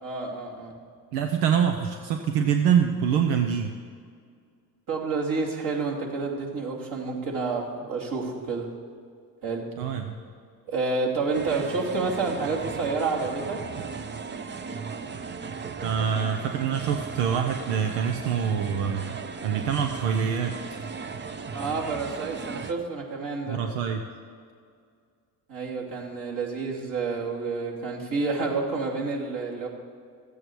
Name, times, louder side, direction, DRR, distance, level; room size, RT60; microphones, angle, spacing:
voice 1, 0.0-0.7 4.9-8.7 9.4-9.7 10.7-13.6 21.5-23.6 25.5-29.7, right 4 dB, 50° right, -2 dB, 2.7 m, -29 dB
voice 2, 1.1-3.8 9.8-10.1 15.8-20.5 23.5-24.0, right 7 dB, 85° right, 5 dB, 0.8 m, -25 dB
sound 1, 11.3-22.7, right 5 dB, 25° right, 0.7 m, -36 dB
14.0 x 8.5 x 4.6 m, 2.2 s
supercardioid pair, 80°, 41 cm